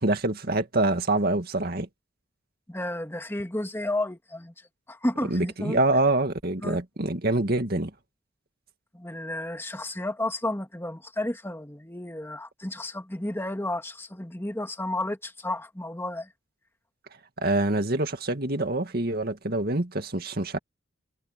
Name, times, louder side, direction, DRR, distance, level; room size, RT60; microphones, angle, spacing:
voice 1, 0.0-1.9 5.3-7.9 17.4-20.6, right 2 dB, 50° right, 2.2 m, -25 dB
voice 2, 2.7-4.5 4.9-5.8 6.6-6.8 8.9-16.3, left 1 dB, 10° left, 2.2 m, -32 dB
head